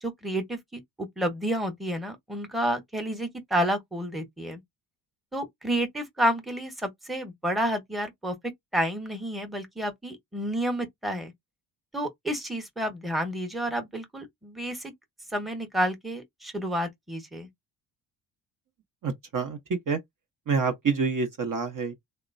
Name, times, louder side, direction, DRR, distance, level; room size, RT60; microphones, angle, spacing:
voice 1, 0.0-4.6 5.3-8.3 8.7-11.3 11.9-14.9 15.3-17.5, equal, ahead, 1.1 m, -30 dB
voice 2, 19.0-19.6 19.9-20.0 20.5-21.9, right 5 dB, 40° right, 1.0 m, -27 dB
2.9 x 2.1 x 2.5 m
hypercardioid pair, 55°, 49 cm